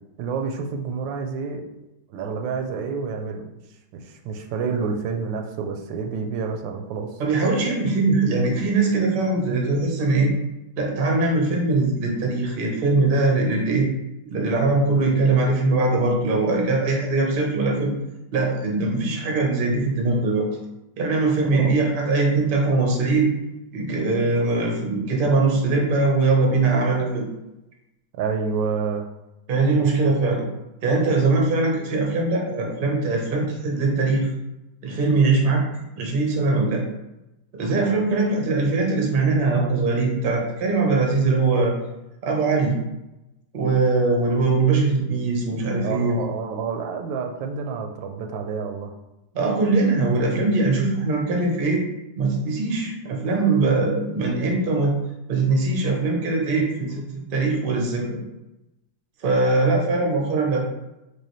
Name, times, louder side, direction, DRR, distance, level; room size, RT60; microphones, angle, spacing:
voice 1, 0.2-1.7 2.1-3.4 3.9-7.2 21.5-21.7 28.2-29.1 29.7-30.1 45.8-48.9, right 5 dB, 85° right, 4 dB, 1.3 m, -29 dB
voice 2, 7.2-10.3 10.8-13.9 14.2-17.9 18.3-20.5 21.0-23.3 23.7-27.3 29.5-30.5 30.8-34.3 34.8-35.6 36.0-36.8 37.5-41.7 42.2-42.7 43.5-46.2 49.3-51.8 52.2-54.9 55.3-58.2 59.2-60.6, right 3 dB, 45° right, 0 dB, 0.6 m, -21 dB
4.7 x 2.6 x 3.0 m, 0.95 s
omnidirectional pair, 2.0 m